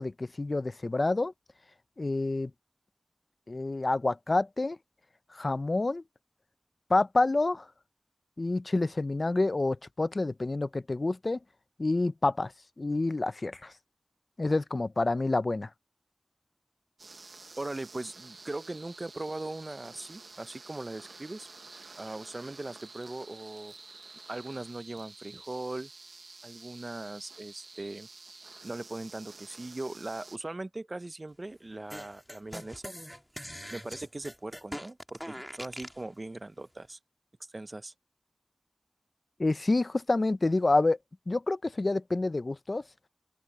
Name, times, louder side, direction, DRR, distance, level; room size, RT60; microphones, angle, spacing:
voice 1, 0.0-1.3 2.0-2.5 3.5-4.8 5.3-6.0 6.9-7.7 8.4-11.4 11.8-12.5 12.8-13.7 14.4-15.7 39.4-41.0 41.3-42.8, left 2 dB, 55° left, 0.5 m, -28 dB
sound 1, 17.0-30.4, right 3 dB, 80° right, 0.8 m, -50 dB
voice 2, 17.6-21.5 22.0-23.7 24.3-25.9 26.4-28.1 28.6-32.9 33.7-37.0 37.4-37.9, right 2 dB, 45° right, 0.6 m, -39 dB
sound 2, 31.9-36.0, equal, ahead, 1.8 m, -42 dB
open air
wide cardioid pair, 55°, 0 cm